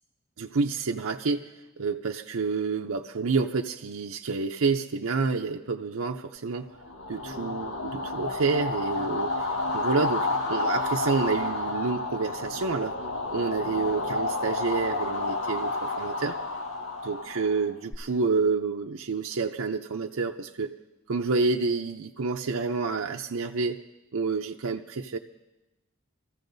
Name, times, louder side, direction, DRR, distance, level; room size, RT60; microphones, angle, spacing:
voice 1, 0.4-1.5 1.8-6.7 7.1-9.3 9.7-13.0 13.3-16.4 17.0-20.8 21.1-23.8 24.1-25.2, right 4 dB, 85° right, 2 dB, 0.6 m, -28 dB
sound 1, 6.8-17.9, left 3 dB, 70° left, 1.7 m, -30 dB
26.5 x 15.0 x 2.7 m, 1.0 s
head